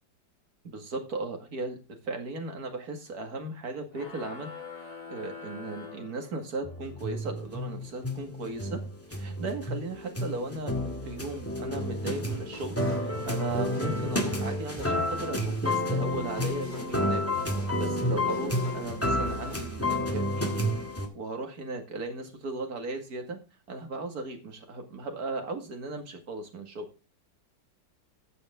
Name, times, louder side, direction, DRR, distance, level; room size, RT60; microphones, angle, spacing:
voice 1, 0.6-1.8 2.0-4.5 4.8-8.8 9.1-17.2 17.8-20.7 21.1-23.4 23.7-26.9, right 2 dB, 55° right, 4 dB, 2.6 m, -37 dB
sound 1, 3.9-6.8, left 5 dB, 45° left, 2.8 m, -44 dB
sound 2, 6.6-21.1, left 1 dB, 10° left, 1.9 m, -30 dB
sound 3, 12.0-19.7, left 1 dB, 25° left, 2.2 m, -46 dB
14.0 x 7.0 x 3.8 m, 0.33 s
omnidirectional pair, 2.0 m